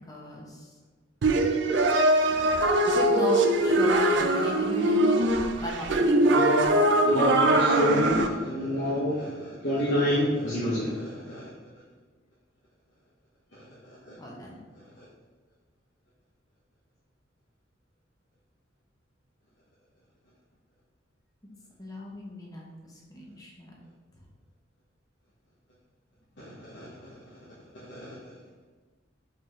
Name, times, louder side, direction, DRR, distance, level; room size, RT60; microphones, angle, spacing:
voice 1, 0.1-0.8 2.8-5.1 5.6-6.0 14.2-14.6 21.8-23.8, left 1 dB, 20° left, -2 dB, 0.8 m, -36 dB
sound 1, 1.2-8.3, right 1 dB, 65° right, 0.4 m, -22 dB
voice 2, 2.2-2.6 6.2-11.4 13.5-14.1 15.0-15.1 26.4-27.4 27.9-28.1, left 1 dB, 75° left, -8 dB, 0.9 m, -29 dB
4.7 x 4.4 x 2.4 m, 1.4 s
head